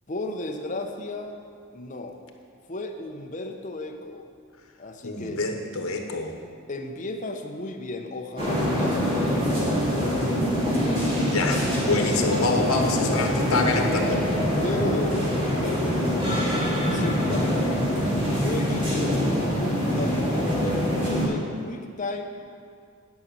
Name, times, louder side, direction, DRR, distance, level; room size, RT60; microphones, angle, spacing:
voice 1, 0.1-1.4 1.7-2.2 2.7-4.3 4.8-5.4 6.7-10.0 14.6-16.3 16.9-17.9 18.4-22.3, left 2 dB, 35° left, 4 dB, 0.7 m, -34 dB
voice 2, 5.0-6.4 11.2-14.3, left 3 dB, 85° left, 3 dB, 1.1 m, -26 dB
sound 1, 8.4-21.3, equal, 25° right, 2.1 m, -24 dB
9.6 x 5.4 x 7.5 m, 2.2 s
head